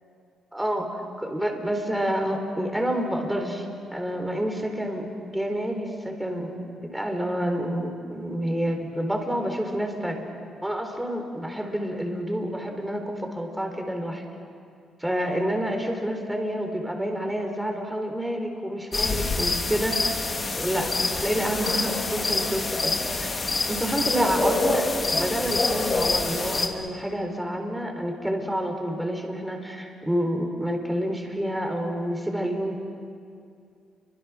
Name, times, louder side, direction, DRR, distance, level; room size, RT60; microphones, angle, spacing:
voice 1, 0.5-3.7 3.9-10.2 10.6-14.2 15.0-20.1 20.5-23.3 23.7-32.8, equal, 5° right, 3 dB, 4.2 m, -28 dB
sound 1, 18.9-26.7, left 3 dB, 35° left, 2.7 m, -26 dB
30.0 x 24.5 x 6.3 m, 2.4 s
cardioid pair, 90°, 0 cm